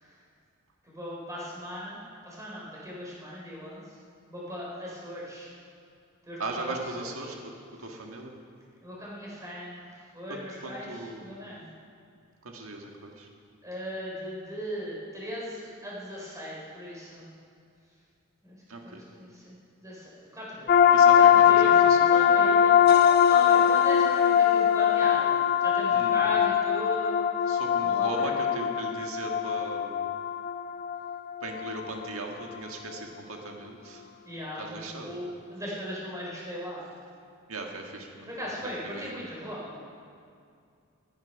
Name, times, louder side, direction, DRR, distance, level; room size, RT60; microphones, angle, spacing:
voice 1, 0.9-2.0 2.2-3.8 4.3-5.5 6.3-7.1 8.8-9.8 10.1-11.6 13.6-17.2 18.4-18.6 18.8-19.5 19.8-21.0 21.4-22.7 23.2-25.4 25.6-27.2 27.8-28.3 34.3-35.2 35.5-36.8 38.3-39.8, equal, 15° right, -5 dB, 4.0 m, -38 dB
voice 2, 6.4-7.4 7.8-8.3 10.3-11.4 12.4-13.3 18.7-19.0 20.9-22.1 25.9-26.4 27.5-30.0 31.4-34.0 34.6-35.1 37.5-39.2, right 2 dB, 70° right, 2 dB, 1.7 m, -38 dB
sound 1, 20.7-32.1, left 9 dB, 45° left, 0.5 m, -21 dB
15.0 x 9.5 x 5.6 m, 2.4 s
head